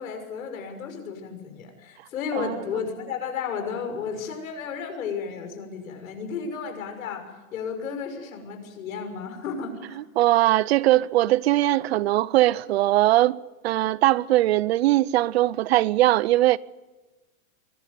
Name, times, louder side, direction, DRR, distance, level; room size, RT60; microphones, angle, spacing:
voice 1, 0.0-10.0, left 6 dB, 75° left, 6.2 m, -33 dB
voice 2, 10.2-16.6, right 15 dB, 50° right, 0.6 m, -20 dB
24.0 x 12.5 x 9.5 m
supercardioid pair, 160°, 41 cm